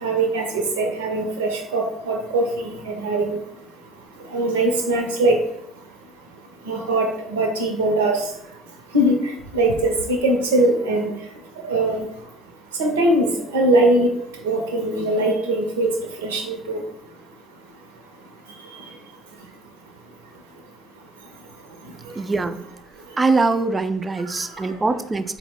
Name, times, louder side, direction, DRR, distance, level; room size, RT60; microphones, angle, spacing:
voice 1, 0.0-3.4 4.3-5.4 6.7-8.2 8.9-9.2 9.5-11.1 11.7-12.0 12.8-14.1 14.4-15.9 16.2-16.8, right 1 dB, 75° right, 4 dB, 0.5 m, -21 dB
voice 2, 22.2-22.6 23.2-25.4, right 3 dB, 25° right, 10 dB, 0.3 m, -22 dB
4.2 x 2.1 x 4.1 m, 0.78 s
figure-of-eight pair, 50°, 0 cm